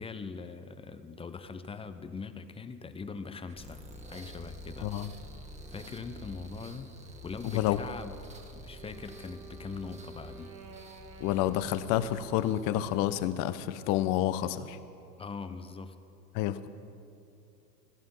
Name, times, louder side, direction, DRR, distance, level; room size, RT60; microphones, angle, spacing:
voice 1, 0.0-3.8 4.1-4.9 5.7-6.9 7.2-8.2 8.5-10.6 15.2-15.9, left 5 dB, 10° left, 10 dB, 0.7 m, -41 dB
sound 1, 3.5-13.5, equal, 15° right, 1.6 m, -48 dB
Wind instrument woodwind instrument, 8.5-13.1, right 4 dB, 85° right, 2.1 m, -51 dB
voice 2, 11.2-14.8 16.3-16.7, left 12 dB, 40° left, 13 dB, 1.0 m, -29 dB
17.0 x 15.0 x 5.6 m, 2.6 s
hypercardioid pair, 95°, 49 cm